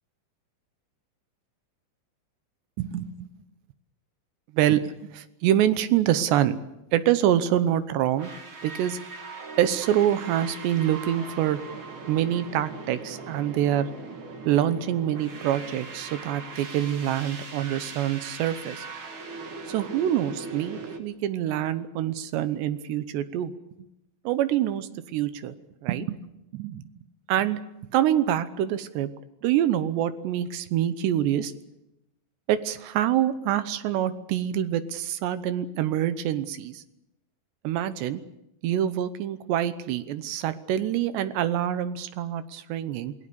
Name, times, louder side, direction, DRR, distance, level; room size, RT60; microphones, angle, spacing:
voice 1, 2.8-3.3 4.5-4.9 5.1-6.6 6.9-8.3 8.6-9.0 9.6-11.6 12.1-13.9 14.5-18.9 19.7-23.5 24.2-25.5 25.8-26.2 26.5-26.8 27.3-27.6 27.9-29.1 29.4-31.5 32.5-36.8 37.6-38.2 38.6-43.1, right 11 dB, 75° right, 12 dB, 3.0 m, -25 dB
sound 1, 8.2-21.0, right 4 dB, 50° right, 1.5 m, -40 dB
27.5 x 18.0 x 6.9 m, 0.88 s
omnidirectional pair, 5.3 m